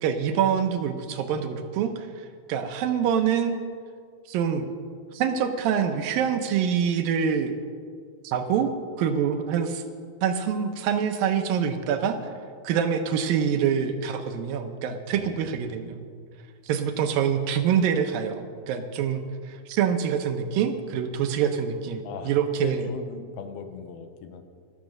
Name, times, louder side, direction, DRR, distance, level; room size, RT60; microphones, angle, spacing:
voice 1, 0.0-3.6 4.3-4.7 5.1-7.5 8.2-9.8 10.2-12.3 12.6-16.1 16.6-22.9, right 7 dB, 75° right, 7 dB, 2.4 m, -25 dB
voice 2, 15.2-15.6 22.0-24.4, left 6 dB, 80° left, 8 dB, 2.8 m, -39 dB
13.5 x 13.0 x 6.5 m, 2.1 s
omnidirectional pair, 4.5 m